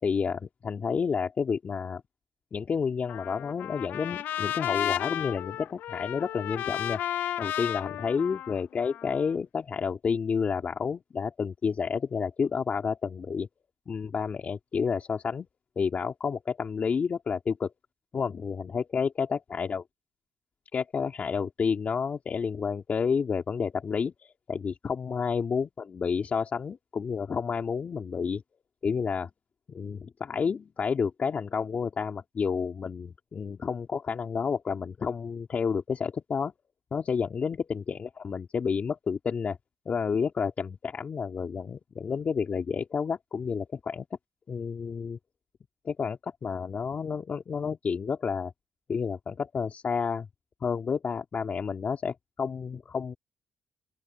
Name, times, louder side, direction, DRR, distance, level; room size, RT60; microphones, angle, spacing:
voice 1, 0.0-2.0 2.5-7.0 7.4-13.5 13.9-15.5 15.8-17.7 18.1-19.8 20.7-28.4 28.8-29.3 29.7-36.5 36.9-39.6 39.9-44.1 44.5-45.2 45.8-48.5 48.9-50.3 50.6-53.2, left 6 dB, 50° left, 2.8 m, -30 dB
Trumpet, 3.1-9.3, left 12 dB, 75° left, 1.0 m, -33 dB
open air
supercardioid pair, 55°, 3 cm